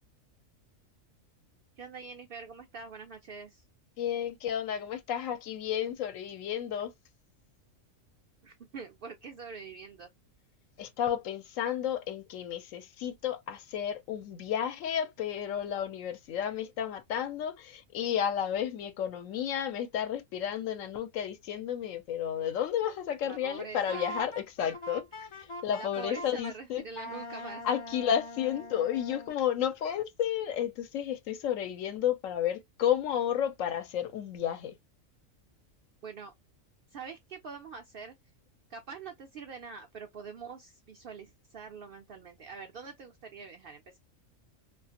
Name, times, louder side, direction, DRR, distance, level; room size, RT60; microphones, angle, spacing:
voice 1, 1.8-3.6 8.4-10.1 23.2-24.1 25.8-27.6 36.0-36.3 36.9-38.1 38.7-44.0, right 5 dB, 65° right, 0.5 m, -44 dB
voice 2, 4.0-6.9 10.8-25.0 25.6-26.8 27.6-34.7, left 9 dB, 75° left, 1.0 m, -32 dB
Wind instrument woodwind instrument, 23.9-26.5 26.9-29.3, equal, 50° left, 0.3 m, -42 dB
2.5 x 2.4 x 2.7 m
omnidirectional pair, 1.4 m